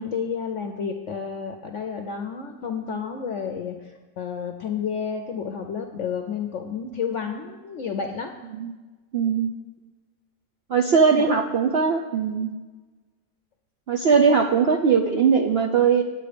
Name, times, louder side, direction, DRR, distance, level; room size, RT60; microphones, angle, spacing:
voice 1, 0.0-8.3 11.1-11.4, left 6 dB, 60° left, 4 dB, 0.9 m, -31 dB
voice 2, 9.1-9.5 10.7-12.5 13.9-16.0, right 6 dB, 60° right, 2 dB, 0.6 m, -20 dB
9.9 x 8.4 x 5.1 m, 1.3 s
omnidirectional pair, 1.7 m